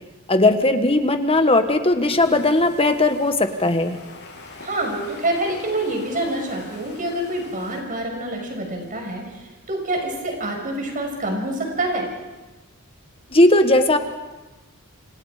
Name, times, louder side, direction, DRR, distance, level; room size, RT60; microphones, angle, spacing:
voice 1, 0.3-4.0 13.3-14.0, left 2 dB, 25° left, 8 dB, 1.6 m, -18 dB
sound 1, 2.1-7.8, left 2 dB, 55° left, 7.3 m, -43 dB
voice 2, 4.6-12.1, right 1 dB, 40° right, 2 dB, 6.2 m, -26 dB
28.5 x 27.0 x 5.1 m, 1.1 s
head